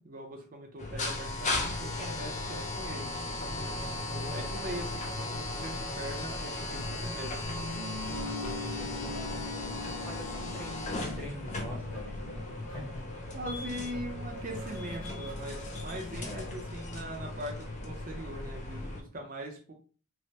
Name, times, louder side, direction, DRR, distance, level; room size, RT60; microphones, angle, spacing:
voice 1, 0.0-3.1 4.1-7.4 13.3-19.7, right 1 dB, 40° right, 2 dB, 0.5 m, -41 dB
sound 1, 0.8-19.0, left 2 dB, 35° left, 0.4 m, -37 dB
sound 2, 1.7-18.4, equal, 70° left, 0.9 m, -50 dB
Guitar, 7.4-12.5, left 3 dB, 70° right, 0.8 m, -42 dB
voice 2, 8.3-9.3 9.8-13.0 16.2-16.5, equal, 10° left, -2 dB, 0.8 m, -45 dB
3.1 x 2.1 x 2.7 m, 0.38 s
head